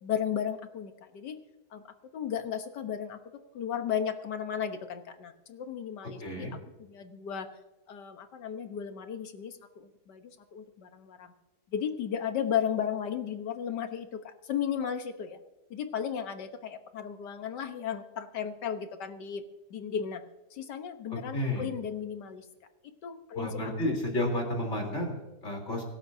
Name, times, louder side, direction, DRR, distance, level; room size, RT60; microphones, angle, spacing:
voice 1, 0.0-1.4 1.7-1.8 2.1-3.2 3.5-6.5 6.9-7.5 7.9-11.3 11.7-15.4 15.7-19.4 19.7-20.2 20.5-22.5 23.0-23.5, left 8 dB, 90° left, 8 dB, 1.8 m, -34 dB
voice 2, 6.2-6.6 21.1-21.7 23.3-25.8, left 1 dB, 40° left, 1 dB, 4.1 m, -32 dB
25.5 x 12.0 x 2.8 m, 1.1 s
omnidirectional pair, 1.8 m